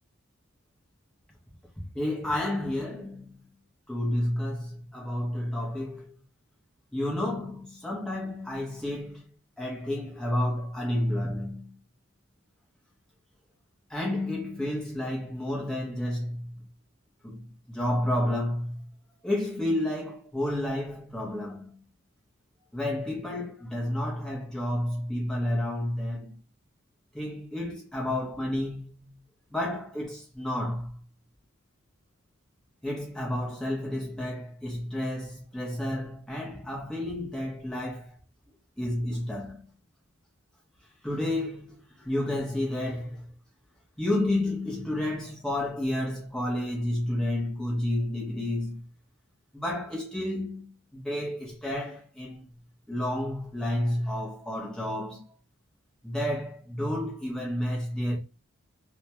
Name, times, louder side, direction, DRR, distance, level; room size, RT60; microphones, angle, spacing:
voice 1, 1.8-3.4 3.9-6.1 6.9-9.2 9.6-11.8 13.9-16.5 17.2-18.8 19.2-21.8 22.7-26.3 27.1-29.2 29.5-31.0 32.8-38.2 38.8-39.7 41.0-43.2 44.0-48.8 49.5-52.4 52.9-55.2 56.0-58.2, left 1 dB, 5° left, 0.6 m, -31 dB
2.2 x 2.1 x 2.8 m
head